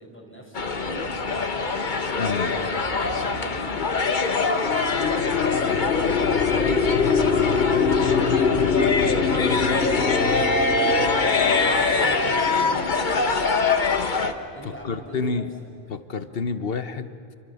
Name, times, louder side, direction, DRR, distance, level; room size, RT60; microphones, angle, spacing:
voice 1, 0.0-1.8 3.0-6.4 6.9-10.6 11.2-13.6 14.5-15.4, equal, 10° left, 0 dB, 5.2 m, -42 dB
sound 1, 0.5-14.3, left 3 dB, 50° left, 1.4 m, -24 dB
voice 2, 2.2-2.5 14.6-15.5 15.9-17.1, left 4 dB, 70° left, 11 dB, 1.3 m, -29 dB
sound 2, 4.4-12.9, left 6 dB, 85° left, 1.4 m, -24 dB
29.5 x 24.5 x 7.1 m, 2.8 s
omnidirectional pair, 1.0 m